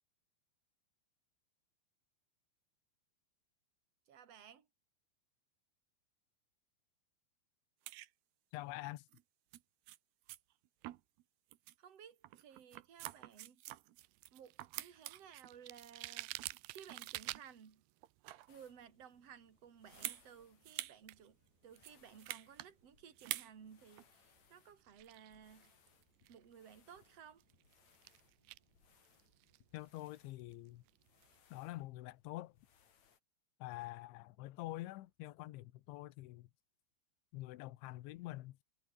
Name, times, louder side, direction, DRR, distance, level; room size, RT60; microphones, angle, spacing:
voice 1, 4.1-4.7 11.8-13.6 14.3-16.3 16.7-17.8 18.5-21.4 21.6-25.7 26.3-27.4, right 8 dB, 40° right, 3.5 m, -57 dB
sound 1, 7.9-8.1 9.1-9.2 9.5-9.6 9.9-10.0 10.3-10.4 10.8-11.2 11.5-11.7 12.2-14.3 14.6-15.5 16.0-16.6 16.9-17.4 18.0-18.6 19.9-20.2 20.6-21.0 21.2-21.3 21.7-22.7 23.2-23.5 24.0-24.1, right 16 dB, 70° right, 2.7 m, -47 dB
voice 2, 8.5-9.0 29.7-30.8 31.5-32.5 33.6-36.5 37.3-38.6, left 17 dB, 85° left, 3.5 m, -46 dB
sound 2, 14.0-31.4, right 20 dB, 85° right, 2.2 m, -54 dB
sound 3, 18.5-33.2, left 7 dB, 45° left, 3.3 m, -72 dB
omnidirectional pair, 5.3 m